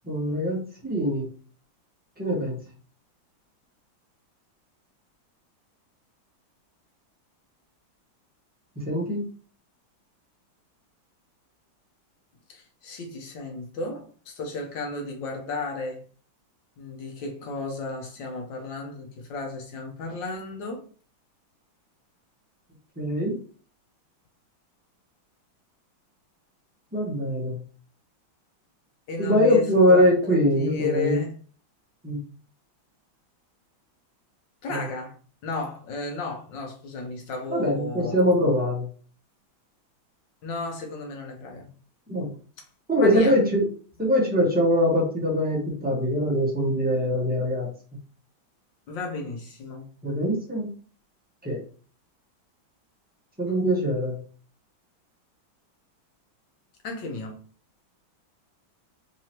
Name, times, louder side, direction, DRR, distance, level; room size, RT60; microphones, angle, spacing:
voice 1, 0.1-1.3 2.2-2.6 8.8-9.2 23.0-23.4 26.9-27.6 29.2-31.2 32.0-32.2 34.7-34.8 37.5-38.9 42.1-42.3 42.9-43.7 44.0-47.7 50.0-50.7 51.4-51.6 53.4-54.2, equal, 10° right, 0.6 m, -22 dB
voice 2, 12.5-16.1 16.8-20.8 29.1-30.1 30.5-31.4 34.6-35.2 35.4-38.2 40.4-41.7 42.9-43.3 48.9-49.9 53.5-53.6 56.8-57.4, left 3 dB, 70° left, 1.5 m, -33 dB
3.9 x 3.1 x 2.8 m
omnidirectional pair, 2.2 m